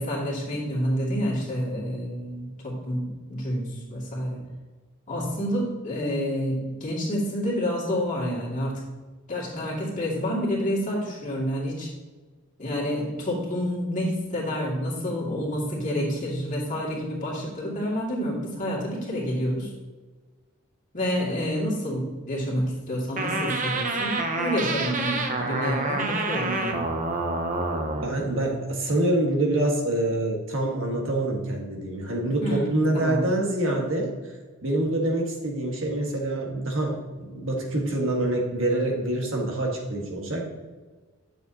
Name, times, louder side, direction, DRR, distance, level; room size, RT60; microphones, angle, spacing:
voice 1, 0.0-4.4 5.1-8.8 9.3-11.9 12.6-19.7 20.9-26.9 32.4-33.2, equal, 35° left, -4 dB, 2.4 m, -28 dB
sound 1, 23.2-28.1, right 2 dB, 35° right, 0.8 m, -27 dB
voice 2, 28.0-34.1 34.6-40.5, right 1 dB, 60° right, -1 dB, 1.6 m, -26 dB
9.2 x 6.9 x 2.9 m, 1.3 s
head